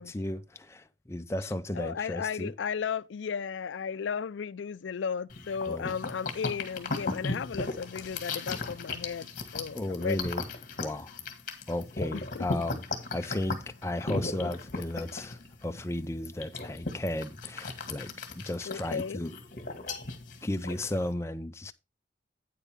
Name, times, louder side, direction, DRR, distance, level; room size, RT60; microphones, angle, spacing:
voice 1, 0.0-2.5 5.7-5.9 9.7-10.5 10.8-11.1 11.7-12.8 13.1-19.3 20.4-21.7, left 1 dB, 15° left, 0.5 m, -34 dB
voice 2, 1.7-9.3 9.5-10.2 12.1-12.5 18.7-19.2, left 6 dB, 75° left, 0.4 m, -34 dB
sound 1, 5.3-21.1, left 3 dB, 45° left, 1.7 m, -37 dB
9.2 x 8.3 x 3.4 m
head